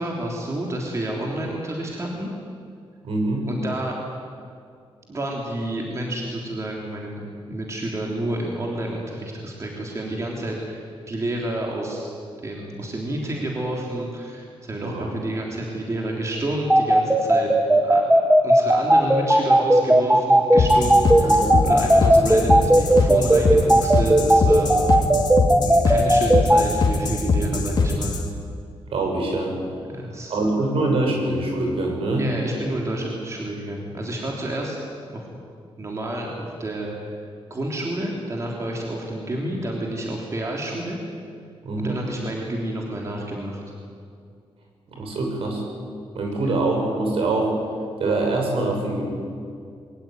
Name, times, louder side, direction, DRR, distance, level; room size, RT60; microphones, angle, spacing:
voice 1, 0.0-2.3 3.5-4.0 5.1-10.8 11.1-12.1 12.4-17.5 17.8-24.8 25.6-28.2 29.8-30.4 32.2-34.8 35.1-35.3 35.8-37.2 37.5-41.0 41.8-43.6 46.4-46.5, right 1 dB, 30° right, -1 dB, 3.4 m, -29 dB
voice 2, 3.0-3.5 14.8-15.1 21.2-21.6 28.9-29.5 30.3-32.3 41.6-42.0 45.0-45.6 46.1-47.5 48.0-49.1, right 2 dB, 70° right, 1 dB, 6.5 m, -24 dB
sound 1, 16.7-26.6, right 1 dB, 10° right, 1.7 m, -15 dB
sound 2, 20.6-28.2, left 3 dB, 45° left, 2.8 m, -22 dB
22.5 x 19.0 x 9.4 m, 2.3 s
wide cardioid pair, 140°, 10 cm